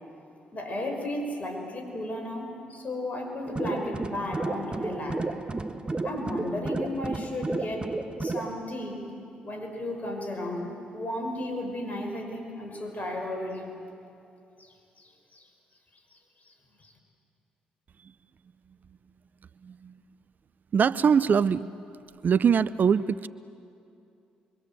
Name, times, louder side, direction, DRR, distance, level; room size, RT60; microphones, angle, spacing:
voice 1, 0.5-5.3 6.0-7.9 8.2-9.0 9.4-13.7 14.6-15.5 16.1-16.2 16.5-16.6 16.8-16.9, left 1 dB, 40° left, 3 dB, 6.0 m, -34 dB
sound 1, 3.5-8.5, right 3 dB, 25° right, 1.3 m, -32 dB
voice 2, 19.6-19.9 20.7-21.7 22.2-23.3, right 7 dB, 50° right, 17 dB, 0.5 m, -22 dB
27.5 x 23.5 x 7.7 m, 2.6 s
hypercardioid pair, 45°, 4 cm